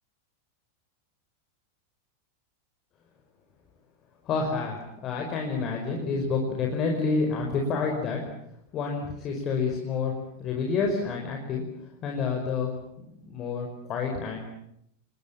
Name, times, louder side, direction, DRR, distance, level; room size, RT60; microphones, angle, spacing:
voice 1, 4.3-8.2 8.7-10.1 10.4-11.6 12.0-12.7 13.2-14.4, left 4 dB, 30° left, 1 dB, 5.3 m, -28 dB
29.5 x 21.0 x 7.2 m, 0.74 s
figure-of-eight pair, 90°, 0 cm